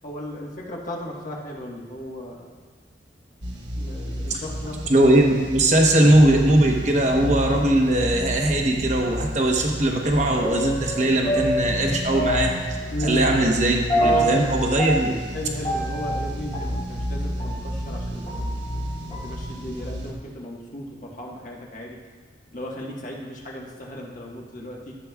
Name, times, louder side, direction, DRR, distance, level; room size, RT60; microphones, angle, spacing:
voice 1, 0.0-2.5 3.7-5.1 12.9-13.3 14.0-14.4 15.3-18.9 19.2-22.0 22.5-24.9, left 1 dB, 45° left, -2 dB, 1.4 m, -34 dB
sound 1, 3.4-20.1, equal, 75° right, 1.1 m, -31 dB
voice 2, 4.9-12.5 13.0-15.2, right 1 dB, 40° right, 1 dB, 1.0 m, -20 dB
sound 2, 10.4-17.6 18.1-19.4 19.8-19.9, right 1 dB, 25° left, 1.5 m, -27 dB
13.5 x 7.6 x 2.3 m, 1.4 s
head